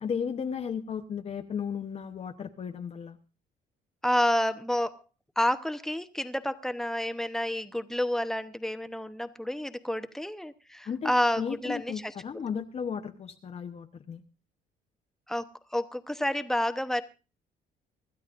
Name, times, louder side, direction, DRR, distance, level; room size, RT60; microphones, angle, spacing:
voice 1, 0.0-3.2 10.9-14.2, left 7 dB, 40° left, 5 dB, 1.0 m, -35 dB
voice 2, 4.0-5.0 5.4-12.1 15.3-17.0, left 1 dB, 5° left, 10 dB, 1.0 m, -29 dB
25.5 x 12.5 x 2.6 m, 0.32 s
cardioid pair, 110°, 17 cm